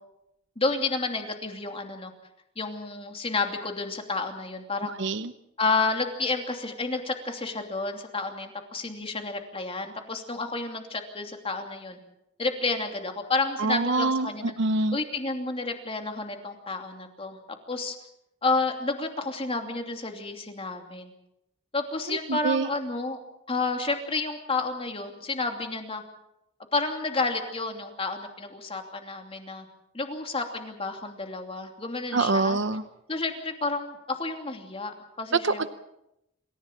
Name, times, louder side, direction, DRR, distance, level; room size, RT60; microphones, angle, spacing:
voice 1, 0.6-2.1 2.6-5.0 5.6-12.0 12.4-14.5 14.9-18.0 18.4-21.1 21.7-23.2 23.5-26.0 26.7-29.7 29.9-32.6 33.1-35.7, left 3 dB, 30° left, 4 dB, 2.8 m, -30 dB
voice 2, 5.0-5.3 13.6-15.0 22.3-22.7 32.1-32.8 35.4-35.7, right 3 dB, 65° right, 12 dB, 0.8 m, -25 dB
27.5 x 15.5 x 7.4 m, 0.86 s
head